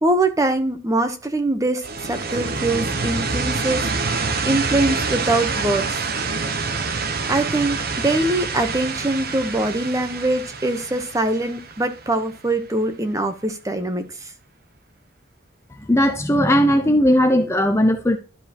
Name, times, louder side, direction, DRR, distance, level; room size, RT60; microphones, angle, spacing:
voice 1, 0.0-6.0 7.3-14.3, right 2 dB, 15° right, 0.9 m, -23 dB
sound 1, 1.8-12.5, right 4 dB, 55° right, 0.8 m, -26 dB
voice 2, 15.9-18.2, equal, 15° left, 0.6 m, -17 dB
12.0 x 5.0 x 2.9 m
head